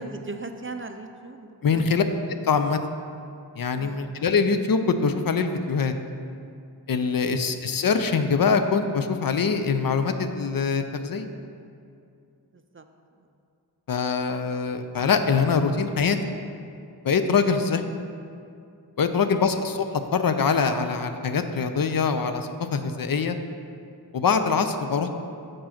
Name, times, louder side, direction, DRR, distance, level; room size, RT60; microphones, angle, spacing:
voice 1, 0.0-1.9 3.8-4.0 7.3-7.4 12.5-12.8 19.1-19.2, right 3 dB, 35° right, 7 dB, 0.4 m, -38 dB
voice 2, 1.6-2.0 2.5-2.8 3.6-5.9 6.9-11.3 13.9-16.2 17.0-17.8 19.0-19.9 20.1-23.4 24.1-25.1, left 5 dB, 60° left, 8 dB, 0.5 m, -23 dB
6.3 x 4.6 x 5.8 m, 2.5 s
wide cardioid pair, 50°, 41 cm